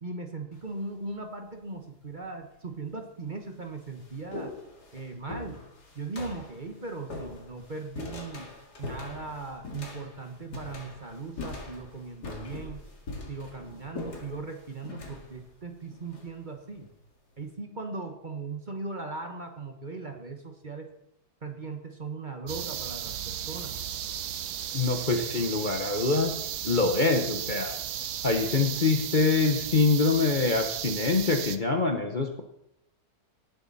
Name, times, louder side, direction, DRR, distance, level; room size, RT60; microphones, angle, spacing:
voice 1, 0.0-4.5 4.9-5.6 5.9-8.5 8.8-12.9 13.3-16.9 17.4-20.9 21.4-23.8, right 3 dB, 30° right, 4 dB, 1.3 m, -38 dB
sound 1, 0.5-1.0 1.9-2.0 2.9-3.0 3.3-16.9, left 3 dB, 80° left, 2.8 m, -42 dB
sound 2, 22.5-31.6, right 10 dB, 75° right, 1.3 m, -35 dB
voice 2, 24.7-26.4 26.6-27.7 28.2-32.4, left 3 dB, 35° left, 3 dB, 1.0 m, -25 dB
18.5 x 7.9 x 4.2 m, 0.80 s
omnidirectional pair, 1.7 m